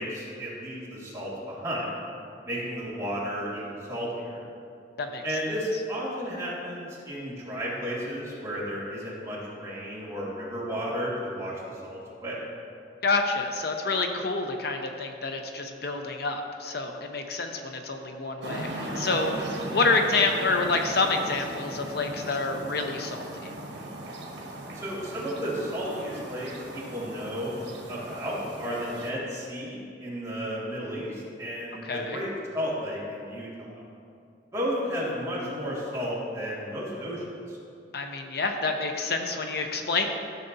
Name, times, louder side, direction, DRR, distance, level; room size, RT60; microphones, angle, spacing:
voice 1, 0.0-2.0 2.4-4.4 5.2-12.5 24.7-27.5 27.9-33.7 34.5-37.6, equal, 20° right, -7 dB, 2.1 m, -33 dB
voice 2, 13.0-23.3 31.8-32.2 37.9-40.1, left 3 dB, 60° left, 4 dB, 0.7 m, -28 dB
sound 1, 18.4-29.1, right 1 dB, 75° right, 1.2 m, -38 dB
13.5 x 6.7 x 2.7 m, 2.4 s
head